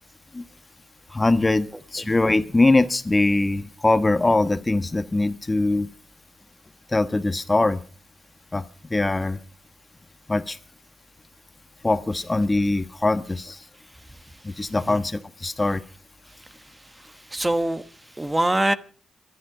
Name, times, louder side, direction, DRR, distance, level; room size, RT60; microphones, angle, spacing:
voice 1, 1.1-1.7 1.9-5.9 6.9-7.8 8.5-8.6 8.9-9.4 10.3-10.6 11.8-13.6 14.4-15.8, left 2 dB, 25° left, 1.3 m, -22 dB
voice 2, 17.0-17.8 18.2-18.7, right 1 dB, 15° right, 1.3 m, -23 dB
22.5 x 12.5 x 5.0 m
cardioid pair, 70°, 0 cm